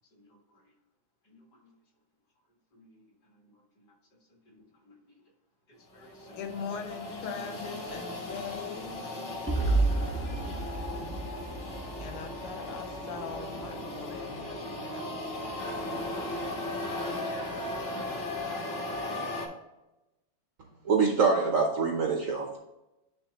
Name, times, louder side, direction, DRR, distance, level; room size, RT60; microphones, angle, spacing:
voice 1, 0.1-0.7 1.2-1.7 2.7-3.9 4.3-4.9 5.7-6.4 6.8-7.6 9.2-9.3 9.8-9.9, left 1 dB, 50° left, 0 dB, 1.9 m, -58 dB
sound 1, 6.0-19.5, left 2 dB, 35° left, 1.1 m, -37 dB
voice 2, 6.4-9.0 12.0-15.0, left 6 dB, 80° left, 5 dB, 1.7 m, -41 dB
sound 2, 9.5-13.4, right 3 dB, 10° right, 0.5 m, -31 dB
voice 3, 20.9-22.6, right 5 dB, 85° right, 1 dB, 0.7 m, -25 dB
10.0 x 3.5 x 2.8 m, 0.96 s
omnidirectional pair, 2.4 m